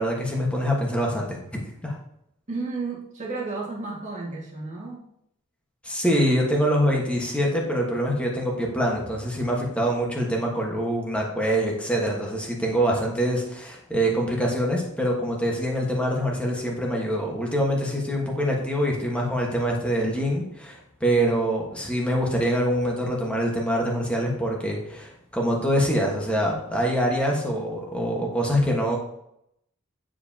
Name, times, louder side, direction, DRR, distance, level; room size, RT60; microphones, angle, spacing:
voice 1, 0.0-2.0 5.8-29.0, equal, 5° left, -1 dB, 1.3 m, -25 dB
voice 2, 2.5-5.1, right 3 dB, 35° right, -4 dB, 1.9 m, -32 dB
9.4 x 4.9 x 2.8 m, 0.77 s
head